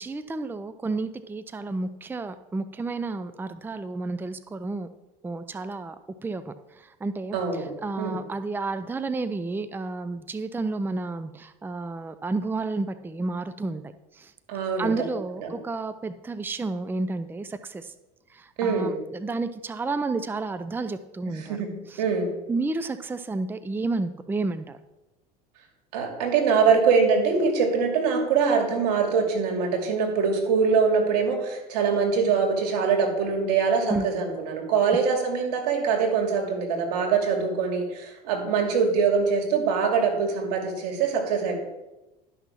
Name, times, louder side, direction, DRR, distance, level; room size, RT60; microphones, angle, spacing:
voice 1, 0.0-4.9 5.2-6.0 6.2-13.8 14.1-14.3 14.8-17.9 18.3-21.6 21.9-22.0 22.5-24.8 33.9-34.1 34.8-35.0, right 3 dB, 10° right, 12 dB, 0.5 m, -31 dB
voice 2, 7.3-7.7 8.0-8.2 14.5-14.9 15.4-15.5 18.6-18.9 21.5-21.7 22.0-22.3 25.9-41.6, right 5 dB, 90° right, 2 dB, 2.5 m, -23 dB
11.5 x 6.0 x 5.8 m, 1.0 s
supercardioid pair, 105°, 20 cm